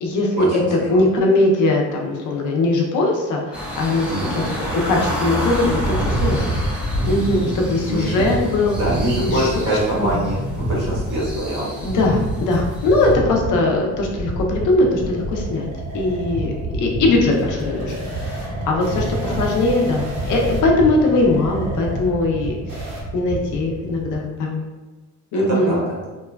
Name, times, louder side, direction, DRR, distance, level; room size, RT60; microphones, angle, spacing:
voice 1, 0.0-4.4 4.7-6.6 7.1-8.7 9.3-9.6 9.9-10.2 11.8-15.7 15.9-24.6 25.3-25.8, left 2 dB, 75° left, 0 dB, 0.6 m, -20 dB
sound 1, 3.5-13.1, equal, 5° right, 0.4 m, -30 dB
voice 2, 4.1-4.4 7.3-7.5 7.8-8.2 8.7-11.7 19.2-19.3 25.3-25.8, right 1 dB, 80° right, -6 dB, 1.3 m, -24 dB
sound 2, 5.5-24.2, right 1 dB, 15° left, 0.8 m, -27 dB
sound 3, 14.2-23.0, right 1 dB, 60° right, 0.8 m, -36 dB
2.9 x 2.2 x 2.2 m, 1.3 s
cardioid pair, 170°, 30 cm